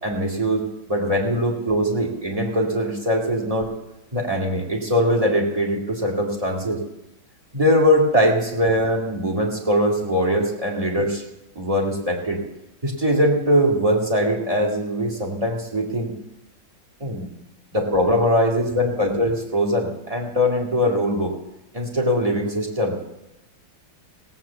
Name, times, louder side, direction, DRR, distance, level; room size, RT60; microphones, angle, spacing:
voice 1, 0.0-3.7 4.1-6.8 7.5-11.2 11.6-12.4 12.8-16.1 17.0-17.3 17.7-21.3 21.7-23.0, equal, 20° right, -1 dB, 2.1 m, -21 dB
16.5 x 7.7 x 7.0 m, 0.92 s
omnidirectional pair, 2.1 m